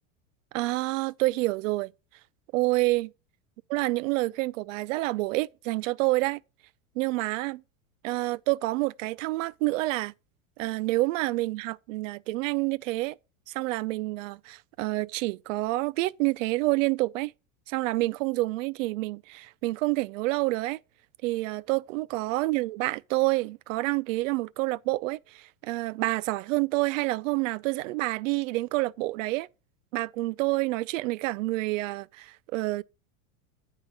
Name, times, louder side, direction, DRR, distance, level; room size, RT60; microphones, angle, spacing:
voice 1, 0.5-1.9 2.5-3.1 3.7-6.4 7.0-7.6 8.0-10.1 10.6-13.2 13.5-17.3 17.7-20.8 21.2-29.5 29.9-32.8, right 21 dB, 70° right, 0.5 m, -28 dB
9.7 x 3.9 x 6.3 m
supercardioid pair, 150°, 40 cm